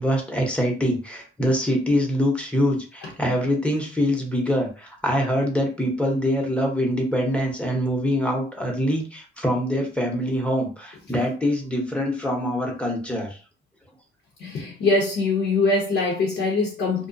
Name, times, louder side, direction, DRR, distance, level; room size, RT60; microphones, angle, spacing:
voice 1, 0.0-13.4, equal, 5° left, 0.8 m, -24 dB
voice 2, 14.4-17.1, left 3 dB, 65° left, 0.8 m, -23 dB
2.4 x 2.1 x 2.6 m
cardioid pair, 90°, 20 cm